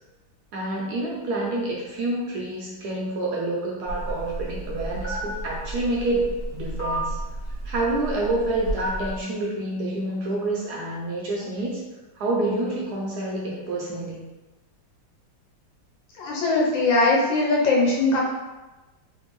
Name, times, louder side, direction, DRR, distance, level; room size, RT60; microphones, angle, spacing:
voice 1, 0.5-7.2 7.6-11.8 12.1-14.2, right 2 dB, 70° right, -3 dB, 1.0 m, -28 dB
Telephone, 3.9-9.2, right 1 dB, 55° left, 1.6 m, -32 dB
voice 2, 16.2-18.2, left 2 dB, 80° left, -4 dB, 1.5 m, -20 dB
3.4 x 2.6 x 3.0 m, 1.1 s
omnidirectional pair, 2.1 m